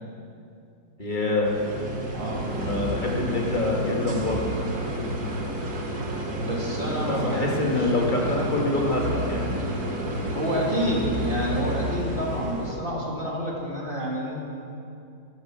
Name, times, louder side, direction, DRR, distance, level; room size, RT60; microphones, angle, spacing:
voice 1, 1.0-1.5 2.6-4.6 7.1-9.8, left 2 dB, 25° left, -2 dB, 2.1 m, -26 dB
sound 1, 1.4-12.8, right 1 dB, 60° right, 2.3 m, -30 dB
voice 2, 2.1-2.5 6.5-8.6 10.3-14.5, equal, 30° right, -3 dB, 2.6 m, -29 dB
15.0 x 11.5 x 6.1 m, 2.6 s
omnidirectional pair, 1.9 m